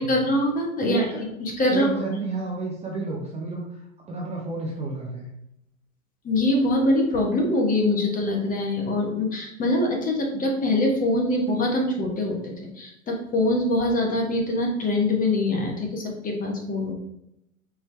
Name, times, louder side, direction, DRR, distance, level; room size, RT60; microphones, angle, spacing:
voice 1, 0.0-1.0 1.4-1.9 6.2-16.9, left 1 dB, 20° left, 0 dB, 1.1 m, -24 dB
voice 2, 0.8-1.2 1.7-3.6 4.1-5.3, right 3 dB, 15° right, -3 dB, 0.7 m, -31 dB
4.7 x 3.1 x 3.3 m, 0.81 s
hypercardioid pair, 105°, 41 cm